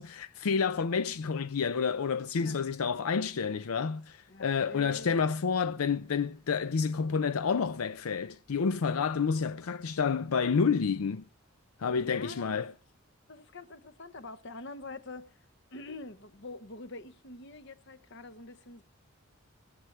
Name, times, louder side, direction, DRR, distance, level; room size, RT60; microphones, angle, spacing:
voice 1, 0.0-11.2 11.8-12.7, left 5 dB, 85° left, 0.5 m, -29 dB
voice 2, 4.3-5.3 11.9-12.6 13.3-15.5 15.7-18.8, left 2 dB, 55° left, 0.9 m, -46 dB
21.5 x 7.9 x 4.3 m
head